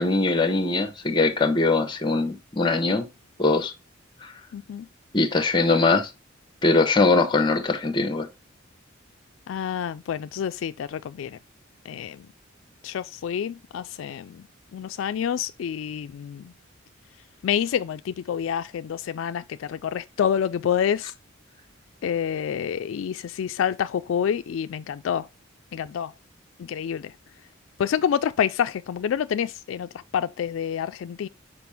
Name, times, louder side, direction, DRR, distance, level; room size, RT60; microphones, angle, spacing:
voice 1, 0.0-3.1 3.4-3.7 5.1-6.1 6.6-8.3, left 3 dB, 25° left, 0.9 m, -21 dB
voice 2, 4.5-4.9 9.5-11.4 11.9-12.3 12.8-14.4 14.7-16.5 17.4-21.1 22.0-25.3 25.7-26.1 26.6-27.1 27.8-31.3, left 8 dB, 75° left, 0.3 m, -28 dB
6.0 x 4.9 x 3.4 m
head